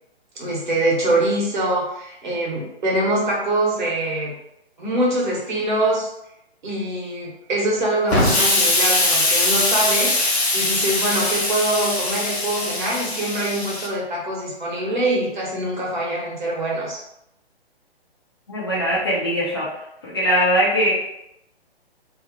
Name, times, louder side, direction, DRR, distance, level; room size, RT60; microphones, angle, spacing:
voice 1, 0.4-4.4 4.8-6.1 6.6-17.0, right 1 dB, 45° right, -3 dB, 1.1 m, -24 dB
Explosion, 8.1-13.9, left 2 dB, 80° left, 0.9 m, -21 dB
voice 2, 18.5-19.7 20.0-20.9, equal, 25° left, -6 dB, 0.4 m, -20 dB
2.8 x 2.0 x 3.9 m, 0.84 s
figure-of-eight pair, 135°, 32 cm